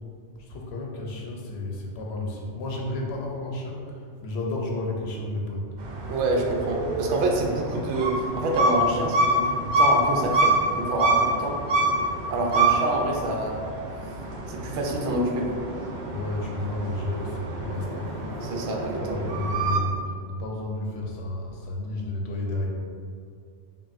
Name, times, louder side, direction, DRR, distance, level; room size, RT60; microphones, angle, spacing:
voice 1, 0.4-5.7 16.1-18.2 18.9-22.7, left 2 dB, 70° left, -1 dB, 0.8 m, -32 dB
sound 1, 5.8-19.8, right 1 dB, 55° right, 0.5 m, -26 dB
voice 2, 6.1-11.6 12.3-13.6 14.5-15.6 18.4-19.2, right 2 dB, 75° right, 0 dB, 0.8 m, -27 dB
5.5 x 2.4 x 2.5 m, 2.2 s
omnidirectional pair, 1.2 m